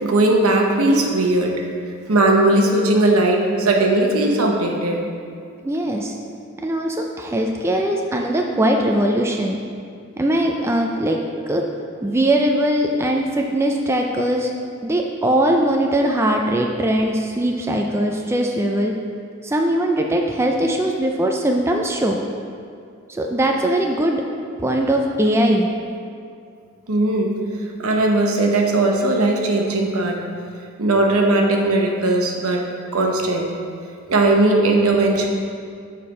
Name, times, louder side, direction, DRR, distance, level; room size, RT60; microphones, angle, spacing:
voice 1, 0.0-1.5 2.1-5.0 26.9-27.4 27.8-30.2 30.8-32.7 32.9-33.5 34.1-35.3, right 2 dB, 85° right, 1 dB, 0.9 m, -18 dB
voice 2, 5.6-6.1 6.6-9.6 10.2-11.2 11.5-11.7 12.0-14.5 14.8-18.9 19.4-22.2 23.1-24.2 24.6-25.7, right 1 dB, 10° right, 1 dB, 0.4 m, -20 dB
7.3 x 4.3 x 4.8 m, 2.3 s
head